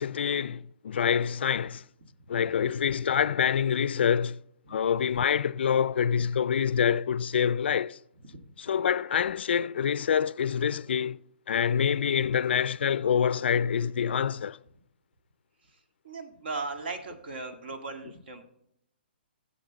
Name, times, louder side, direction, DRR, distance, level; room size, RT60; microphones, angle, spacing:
voice 1, 0.0-1.8 2.3-4.4 4.7-8.0 8.6-11.2 11.5-14.6, left 8 dB, 70° left, 0.4 m, -26 dB
voice 2, 16.0-18.4, right 3 dB, 65° right, 1.9 m, -38 dB
15.0 x 7.6 x 4.0 m
hypercardioid pair, 160°, 6 cm